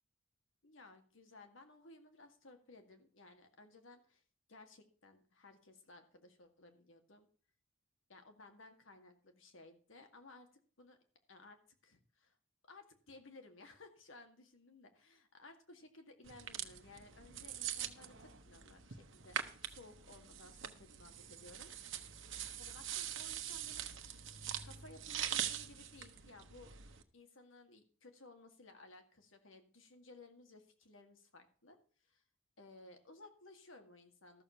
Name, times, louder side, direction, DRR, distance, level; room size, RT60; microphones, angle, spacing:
voice 1, 0.6-4.2 4.5-7.3 8.1-10.5 10.8-11.0 11.3-12.4 12.7-21.7 22.6-24.3 24.6-31.8 32.0-32.2 32.6-34.4, left 2 dB, 75° left, 6 dB, 2.1 m, -58 dB
sound 1, 16.3-27.0, right 9 dB, 70° right, 1.2 m, -44 dB
13.5 x 6.9 x 5.6 m, 0.43 s
head